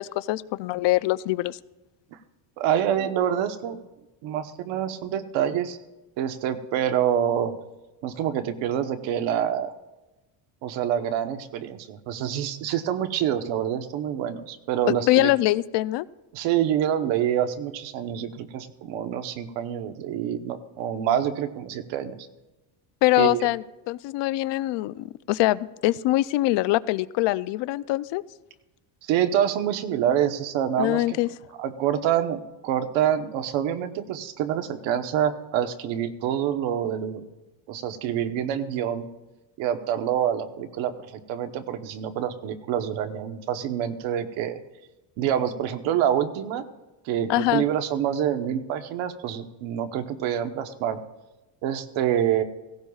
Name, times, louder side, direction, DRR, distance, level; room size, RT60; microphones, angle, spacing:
voice 1, 0.0-1.6 15.1-16.1 23.0-28.2 30.8-31.3 47.3-47.6, left 17 dB, 70° left, 17 dB, 0.5 m, -23 dB
voice 2, 2.6-3.8 4.2-5.8 6.2-7.5 8.0-9.7 10.6-15.3 16.3-22.2 23.2-23.5 29.0-31.2 31.6-37.2 37.7-39.1 39.6-40.9 41.3-44.6 45.2-46.6 47.0-51.0 51.6-52.4, right 10 dB, 85° right, 8 dB, 1.1 m, -26 dB
17.0 x 17.0 x 2.4 m, 1.0 s
cardioid pair, 145°, 45 cm